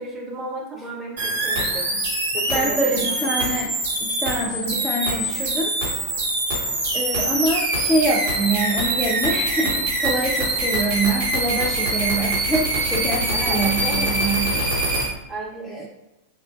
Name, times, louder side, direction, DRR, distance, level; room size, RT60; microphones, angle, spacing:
voice 1, 0.0-2.0 2.3-3.4 10.3-10.4 13.3-14.3 15.3-15.9, right 2 dB, 15° right, -3 dB, 0.8 m, -34 dB
sound 1, 1.2-15.1, right 2 dB, 60° right, 1.1 m, -24 dB
voice 2, 2.5-3.7 4.0-5.7 6.9-14.6 15.6-15.9, right 2 dB, 5° left, -4 dB, 0.4 m, -25 dB
4.1 x 2.2 x 2.4 m, 1.0 s
figure-of-eight pair, 90°, 0 cm